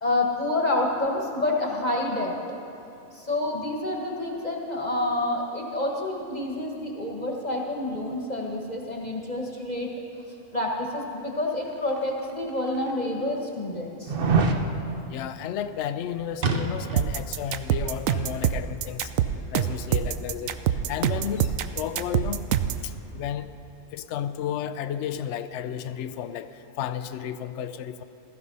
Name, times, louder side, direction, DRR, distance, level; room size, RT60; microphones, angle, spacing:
voice 1, 0.0-2.6 3.1-9.9 10.5-14.1, left 2 dB, 35° left, 0 dB, 1.4 m, -28 dB
sound 1, 12.1-12.2 12.9-13.0 14.1-14.6 16.4-17.1 17.4-17.5, right 4 dB, 50° right, 1.0 m, -24 dB
voice 2, 15.1-19.1 19.5-22.4 22.8-23.5 23.9-28.0, left 9 dB, 70° left, 11 dB, 0.8 m, -33 dB
sound 2, 17.0-22.8, right 10 dB, 90° right, 1.0 m, -25 dB
16.0 x 13.5 x 5.5 m, 2.7 s
omnidirectional pair, 1.3 m